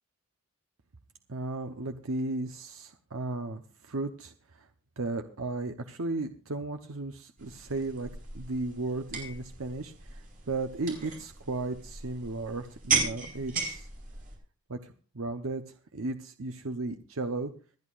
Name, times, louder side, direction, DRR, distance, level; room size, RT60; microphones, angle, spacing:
voice 1, 1.3-4.7 5.0-8.1 8.3-13.9 14.7-15.6 15.9-17.5, right 2 dB, 75° right, 7 dB, 0.9 m, -35 dB
sound 1, 7.4-14.3, right 4 dB, 40° right, 5.0 m, -36 dB
26.5 x 10.5 x 2.5 m, 0.36 s
head